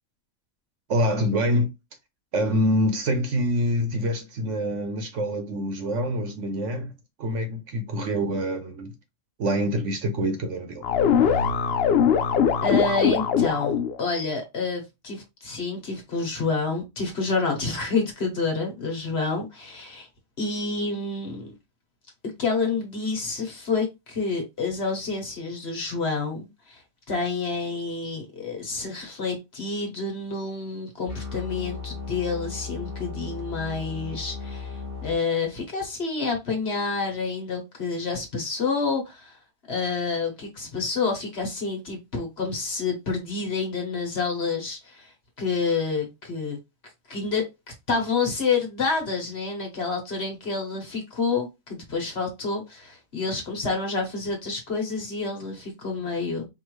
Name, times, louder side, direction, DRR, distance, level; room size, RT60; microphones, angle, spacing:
voice 1, 0.9-1.7 2.3-6.9 7.2-8.9 9.4-10.9, equal, 60° right, 1.1 m, -25 dB
sound 1, 10.8-14.0, left 7 dB, 65° left, 0.6 m, -21 dB
voice 2, 12.6-20.1 20.4-21.5 22.4-26.8 27.1-39.4 39.7-45.1 45.4-46.6 47.1-47.4 47.9-56.5, left 4 dB, 50° left, 1.5 m, -28 dB
sound 2, 31.1-35.1, left 5 dB, 10° left, 1.6 m, -36 dB
4.8 x 2.6 x 3.1 m
omnidirectional pair, 1.5 m